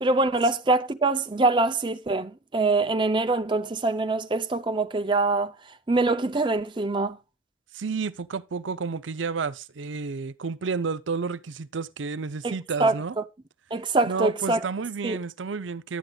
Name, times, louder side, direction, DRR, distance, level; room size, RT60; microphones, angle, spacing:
voice 1, 0.0-5.5 5.9-7.2 12.4-13.2 13.7-14.6 15.0-15.2, right 3 dB, 25° right, 0.6 m, -24 dB
voice 2, 7.7-13.1 14.0-16.0, right 5 dB, 80° right, 0.6 m, -31 dB
11.0 x 9.4 x 2.3 m
head